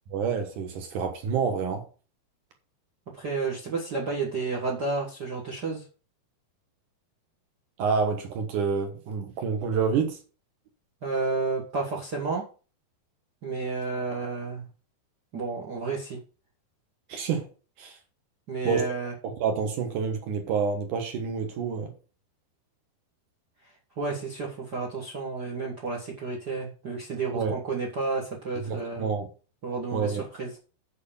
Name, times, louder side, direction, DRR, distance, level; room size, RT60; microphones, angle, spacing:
voice 1, 0.1-1.8 7.8-10.2 17.1-17.5 17.8-18.0 18.6-18.9 19.2-21.9 27.3-27.5 28.7-29.3 29.9-30.3, right 6 dB, 65° right, 2.3 m, -28 dB
voice 2, 3.1-5.8 11.0-12.4 13.4-14.6 15.3-16.2 18.5-19.1 23.6-29.1 29.6-30.5, right 3 dB, 80° right, 0.9 m, -31 dB
8.4 x 4.7 x 6.9 m
omnidirectional pair, 4.8 m